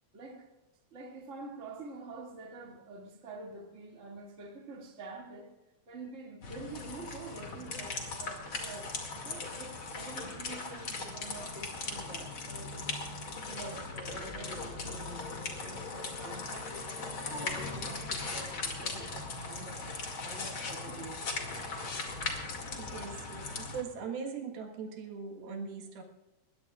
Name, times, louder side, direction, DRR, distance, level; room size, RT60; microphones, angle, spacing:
voice 1, 0.1-0.5 0.9-5.5 5.9-13.0 13.4-21.3, right 3 dB, 25° right, 0 dB, 2.0 m, -47 dB
sound 1, 6.4-23.8, left 3 dB, 40° left, 2.6 m, -39 dB
voice 2, 22.8-26.0, right 5 dB, 75° right, 2 dB, 3.4 m, -40 dB
21.5 x 21.0 x 2.4 m, 1.0 s
omnidirectional pair, 4.4 m